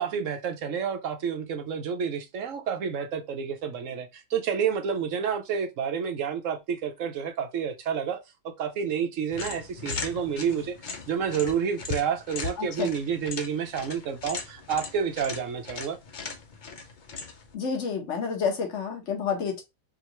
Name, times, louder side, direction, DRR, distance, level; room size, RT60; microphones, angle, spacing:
voice 1, 0.0-8.2 8.6-10.8 11.1-16.0, right 7 dB, 60° right, 0.9 m, -29 dB
sound 1, 9.3-17.5, left 5 dB, 80° left, 0.4 m, -38 dB
voice 2, 12.6-12.9 17.5-19.6, left 6 dB, 50° left, 1.3 m, -29 dB
5.0 x 2.4 x 3.0 m
omnidirectional pair, 1.8 m